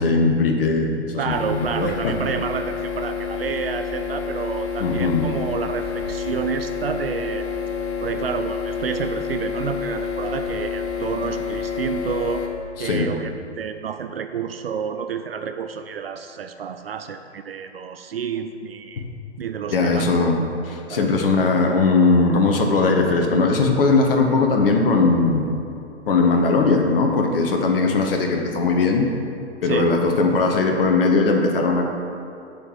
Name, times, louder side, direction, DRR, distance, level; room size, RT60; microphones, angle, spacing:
voice 1, 0.0-1.0 1.2-2.1 4.8-5.3 12.8-13.1 19.0-19.1 19.7-25.4 26.1-29.1 29.6-31.8, left 3 dB, 50° left, 2 dB, 1.2 m, -19 dB
voice 2, 1.2-7.5 8.0-12.5 12.8-19.0 19.4-20.1 20.9-21.2 29.6-29.9, right 7 dB, 55° right, 8 dB, 0.5 m, -29 dB
sound 1, 1.3-12.5, left 5 dB, 15° left, 0.4 m, -28 dB
8.3 x 4.7 x 7.3 m, 2.6 s
figure-of-eight pair, 120°, 35 cm